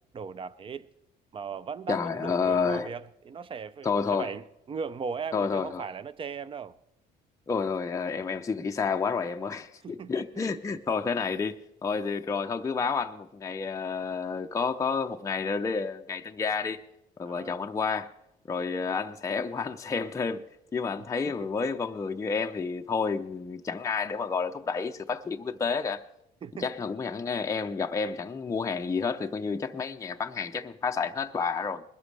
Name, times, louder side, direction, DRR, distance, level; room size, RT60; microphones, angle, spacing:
voice 1, 0.1-0.9 1.3-6.7 9.8-10.4 17.2-17.5 21.3-21.5 26.4-26.7, right 6 dB, 30° right, 0.6 m, -38 dB
voice 2, 1.9-2.9 3.8-4.3 5.3-5.8 7.5-16.8 17.2-18.1 18.5-20.5 20.7-26.0 26.6-31.8, left 5 dB, 20° left, 0.5 m, -30 dB
20.5 x 13.0 x 3.3 m
cardioid pair, 110°, 17 cm